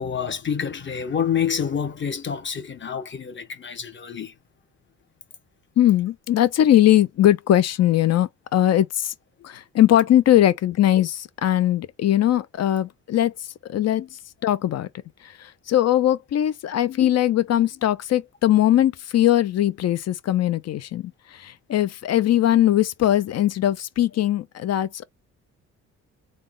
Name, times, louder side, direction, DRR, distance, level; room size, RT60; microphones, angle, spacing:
voice 1, 0.0-4.3, left 7 dB, 40° left, 1.2 m, -27 dB
voice 2, 5.8-9.1 9.4-14.9 15.2-25.0, left 12 dB, 60° left, 0.6 m, -20 dB
3.7 x 2.3 x 3.7 m
cardioid pair, 90°, 30 cm